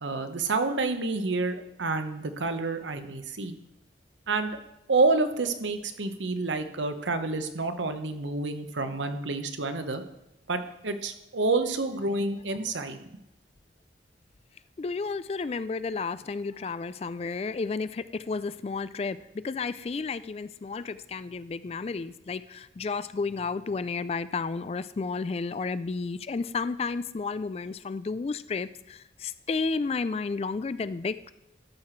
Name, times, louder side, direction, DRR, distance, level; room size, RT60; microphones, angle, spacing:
voice 1, 0.0-3.6 4.3-4.6 4.9-10.0 10.5-13.0, right 3 dB, 90° right, 9 dB, 0.9 m, -28 dB
voice 2, 14.8-31.3, left 4 dB, 35° left, 15 dB, 0.3 m, -32 dB
13.0 x 5.8 x 4.5 m, 0.93 s
head